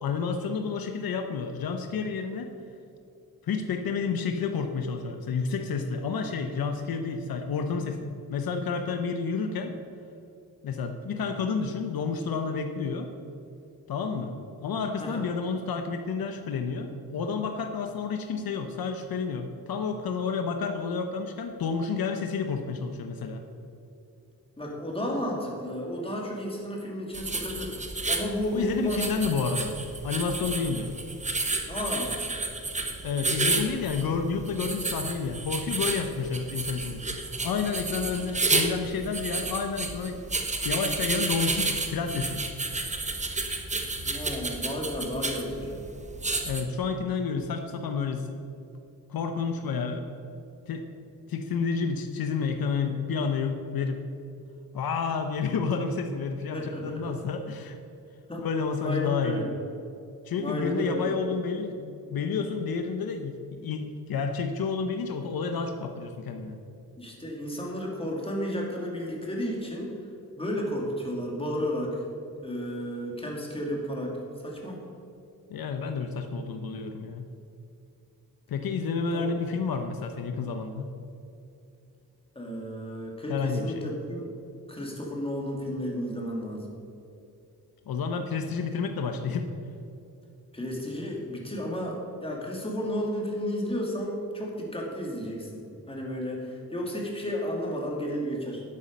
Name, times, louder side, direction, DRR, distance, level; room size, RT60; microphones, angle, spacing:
voice 1, 0.0-2.5 3.4-9.7 10.6-13.1 13.9-14.3 14.6-23.4 28.5-29.8 30.0-30.9 33.0-37.0 37.4-40.2 40.6-42.4 46.4-48.3 49.1-50.1 50.7-50.9 51.3-54.0 54.7-57.8 58.4-59.5 60.2-66.6 75.5-77.3 78.5-80.9 83.3-83.9 87.9-89.5, left 5 dB, 75° left, 6 dB, 0.9 m, -30 dB
voice 2, 24.6-29.0 31.7-32.1 44.0-45.7 56.5-57.2 58.3-58.4 58.8-59.5 60.4-61.1 67.0-69.9 70.4-72.0 72.4-74.1 74.4-74.8 79.1-79.4 82.3-84.3 84.7-86.7 90.5-92.0 92.2-95.6 95.9-98.6, equal, 15° left, -2 dB, 2.6 m, -32 dB
sound 1, 27.1-46.6, right 3 dB, 20° right, 1.1 m, -31 dB
12.0 x 8.4 x 5.3 m, 2.7 s
wide cardioid pair, 110°, 36 cm